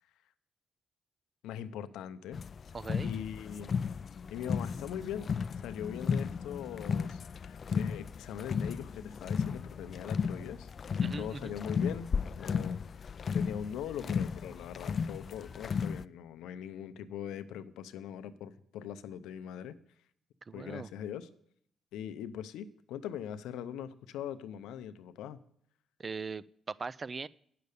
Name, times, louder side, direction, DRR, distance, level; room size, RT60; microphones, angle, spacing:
voice 1, 1.4-2.4 3.0-3.7 4.3-5.3 5.6-10.7 11.2-13.0 13.3-19.8 20.5-21.3 21.9-25.4, left 9 dB, 90° left, 11 dB, 0.6 m, -41 dB
sound 1, 2.3-16.1, left 6 dB, 45° left, 0.3 m, -35 dB
voice 2, 2.7-3.2 11.0-11.5 20.4-20.9 26.0-27.3, right 4 dB, 35° right, 20 dB, 0.3 m, -40 dB
9.4 x 6.8 x 6.5 m, 0.67 s
cardioid pair, 90°, 0 cm